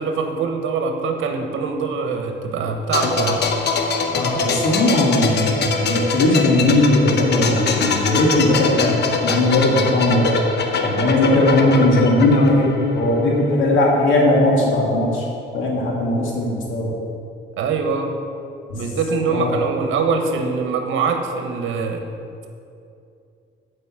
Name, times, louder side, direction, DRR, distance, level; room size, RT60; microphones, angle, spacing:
voice 1, 0.0-3.4 17.6-18.1 18.7-22.0, right 4 dB, 80° right, 4 dB, 1.2 m, -23 dB
sound 1, 2.9-13.5 13.8-14.0, left 4 dB, 55° left, 1.0 m, -23 dB
voice 2, 4.1-10.4 10.8-15.3 15.5-17.0 18.7-18.9 19.3-19.5, left 1 dB, 80° left, -2 dB, 2.3 m, -18 dB
7.7 x 5.5 x 7.7 m, 2.5 s
cardioid pair, 90°, 20 cm